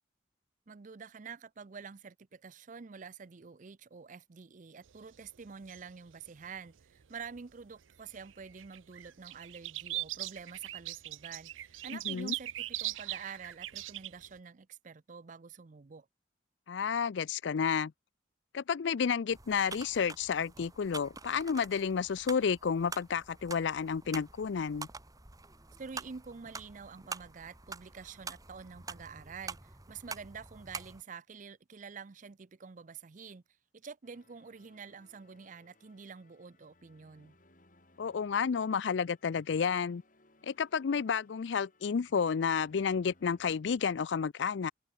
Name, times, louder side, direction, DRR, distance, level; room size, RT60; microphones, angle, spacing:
voice 1, 0.7-16.1 25.8-33.4 33.7-37.3, right 5 dB, 40° right, 0.5 m, -48 dB
sound 1, 4.9-7.4 7.8-14.3, right 16 dB, 90° right, 0.6 m, -40 dB
voice 2, 16.7-17.9 18.5-24.9 38.0-40.0 40.4-44.7, left 6 dB, 65° left, 0.4 m, -31 dB
sound 2, 19.3-31.0, right 4 dB, 20° right, 2.2 m, -47 dB
sound 3, 34.0-43.6, left 2 dB, 45° left, 6.9 m, -66 dB
head